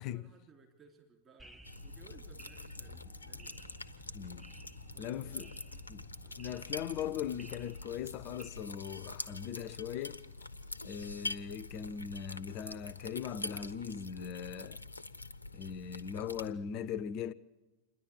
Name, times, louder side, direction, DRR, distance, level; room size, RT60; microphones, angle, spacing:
voice 1, 0.0-4.5 4.9-5.9 6.2-6.7 16.8-17.1, right 5 dB, 25° right, 3.4 m, -61 dB
sound 1, 1.4-8.5, right 1 dB, 5° right, 1.3 m, -55 dB
sound 2, 1.6-16.5, left 2 dB, 80° left, 0.7 m, -45 dB
voice 2, 4.1-4.5 5.0-5.5 5.9-6.1 6.4-10.2 10.8-14.8 15.5-17.3, left 8 dB, 40° left, 0.6 m, -39 dB
sound 3, 7.0-13.1, right 4 dB, 55° right, 4.7 m, -72 dB
28.0 x 10.5 x 8.9 m
figure-of-eight pair, 90°, 0 cm